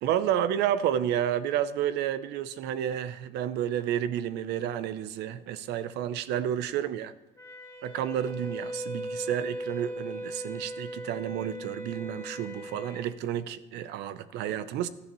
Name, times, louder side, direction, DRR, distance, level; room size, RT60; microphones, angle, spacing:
voice 1, 0.0-7.1 7.8-14.9, right 10 dB, 85° right, 0.6 m, -30 dB
Wind instrument woodwind instrument, 7.4-13.1, equal, 15° left, 2.0 m, -38 dB
17.0 x 11.5 x 3.1 m
cardioid pair, 110°, 17 cm